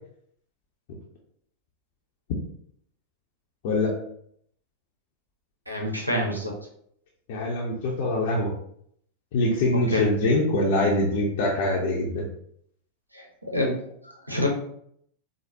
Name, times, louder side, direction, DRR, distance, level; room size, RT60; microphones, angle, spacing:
voice 1, 5.7-6.5 9.9-10.1 13.1-13.8 14.2-14.5, left 1 dB, 85° right, 0 dB, 0.7 m, -27 dB
voice 2, 7.3-8.5 9.3-12.2, left 2 dB, 50° left, -3 dB, 0.6 m, -24 dB
4.6 x 2.0 x 2.6 m, 0.68 s
figure-of-eight pair, 90°, 0 cm